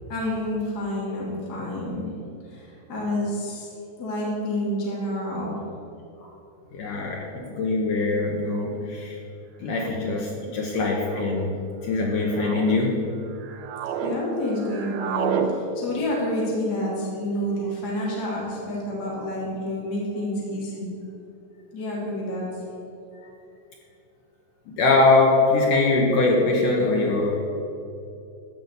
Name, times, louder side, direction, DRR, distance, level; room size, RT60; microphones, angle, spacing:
voice 1, 0.1-2.1 2.5-3.7 4.0-5.6 14.0-20.9 21.7-22.5, left 1 dB, 30° left, -5 dB, 2.3 m, -29 dB
voice 2, 6.7-9.2 9.6-13.1 24.7-27.4, left 3 dB, 75° left, -2 dB, 1.9 m, -22 dB
sound 1, 7.4-7.5 8.6-8.8 9.8-10.2 11.0-11.5 12.1-12.8 13.3-14.2 14.4-15.5, right 7 dB, 80° right, 2.2 m, -31 dB
13.5 x 5.4 x 8.2 m, 2.7 s
omnidirectional pair, 5.4 m